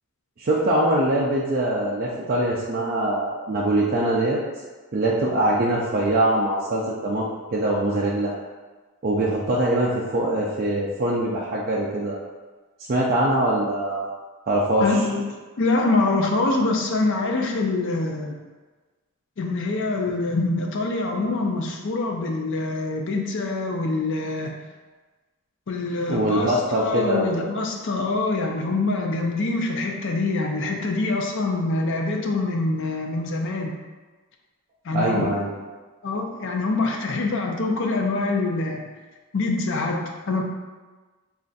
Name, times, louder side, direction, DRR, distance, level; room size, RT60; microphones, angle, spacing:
voice 1, 0.4-4.4 4.9-7.3 7.5-8.3 9.0-12.2 12.9-14.1 14.5-14.9 26.1-27.2 34.9-35.5, right 1 dB, 40° right, -5 dB, 0.4 m, -23 dB
voice 2, 14.8-15.2 15.6-18.4 19.4-24.6 25.7-33.7 34.8-35.2 36.0-38.8 39.3-40.0 40.3-40.4, left 3 dB, 55° left, 1 dB, 0.5 m, -25 dB
3.3 x 2.4 x 3.9 m, 1.3 s
head